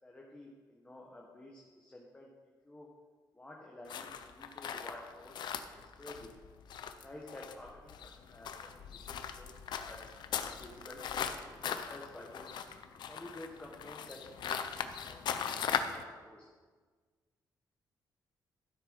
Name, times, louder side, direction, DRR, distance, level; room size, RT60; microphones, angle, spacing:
voice 1, 0.0-2.3 2.6-2.9 3.3-6.3 7.0-10.0 10.3-11.0 11.4-12.5 13.1-16.5, left 1 dB, 15° left, -2 dB, 1.5 m, -51 dB
sound 1, 3.9-16.0, left 7 dB, 75° left, 0.8 m, -39 dB
12.5 x 8.0 x 5.4 m, 1.5 s
cardioid pair, 115°, 8 cm